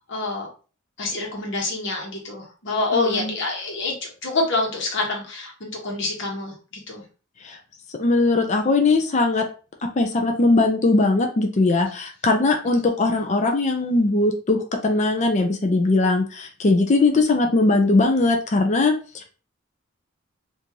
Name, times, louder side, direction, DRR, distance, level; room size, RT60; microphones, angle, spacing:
voice 1, 0.1-0.5 1.0-3.9 4.2-6.5 6.9-7.0, left 2 dB, 65° left, 0 dB, 1.1 m, -26 dB
voice 2, 2.9-3.3 7.4-7.6 8.0-9.4 10.0-19.3, left 2 dB, 35° left, 4 dB, 0.5 m, -20 dB
3.0 x 2.6 x 3.7 m, 0.36 s
head